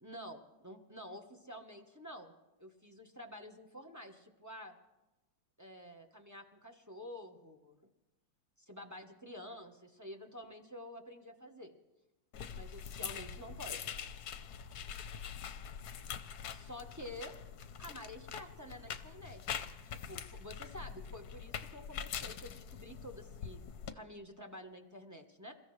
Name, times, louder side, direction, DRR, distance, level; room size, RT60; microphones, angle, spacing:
voice 1, 0.0-2.3 2.6-4.8 5.6-7.8 8.7-11.7 12.5-13.9 16.5-17.3 17.8-19.5 19.9-23.6 23.9-25.5, left 1 dB, 15° right, 4 dB, 0.7 m, -49 dB
sound 1, 12.3-23.9, left 8 dB, 60° left, 1.1 m, -44 dB
28.0 x 14.5 x 3.2 m, 1.1 s
omnidirectional pair, 2.2 m